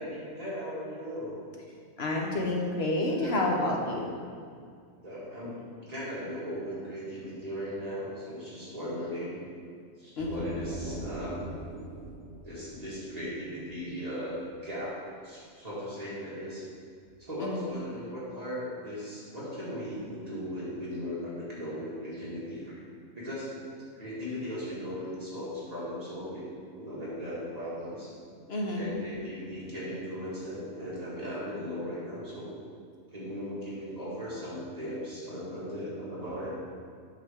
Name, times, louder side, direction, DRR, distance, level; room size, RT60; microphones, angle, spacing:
voice 1, 0.0-1.4 3.2-3.7 5.0-5.6 5.9-9.4 10.0-11.5 12.4-16.7 17.2-22.8 23.1-23.5 24.0-26.5 26.7-28.1 28.7-32.5 33.1-36.5, equal, 25° right, -9 dB, 2.2 m, -37 dB
voice 2, 2.0-4.1 10.2-10.5 17.4-17.6 28.5-28.8, left 2 dB, 50° left, -1 dB, 1.3 m, -29 dB
sound 1, 10.2-13.9, right 1 dB, 45° right, 1.1 m, -41 dB
8.5 x 6.5 x 3.6 m, 2.1 s
omnidirectional pair, 1.5 m